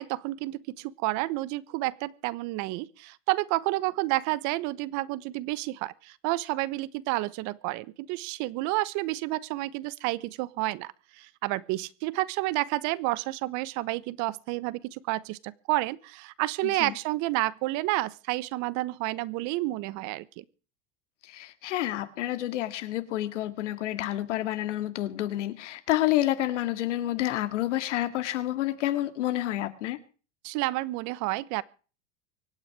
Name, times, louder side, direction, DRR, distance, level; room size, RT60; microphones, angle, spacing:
voice 1, 0.0-20.4 30.4-31.6, right 19 dB, 55° right, 1.2 m, -30 dB
voice 2, 16.6-16.9 21.3-30.0, left 14 dB, 80° left, 2.1 m, -29 dB
25.0 x 9.1 x 4.8 m
hypercardioid pair, 110°, 36 cm